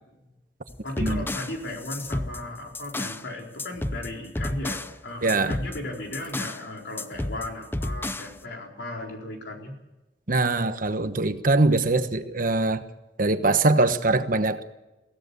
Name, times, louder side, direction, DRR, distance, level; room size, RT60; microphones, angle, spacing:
sound 1, 0.7-3.3 3.6-5.0 5.3-6.6 7.0-8.4, left 1 dB, 10° left, 0.6 m, -32 dB
voice 1, 0.8-9.8, left 1 dB, 65° left, 1 dB, 4.3 m, -36 dB
voice 2, 5.2-5.6 10.3-12.8 13.2-14.6, right 2 dB, 50° right, 9 dB, 1.2 m, -22 dB
23.0 x 16.5 x 7.0 m, 1.0 s
head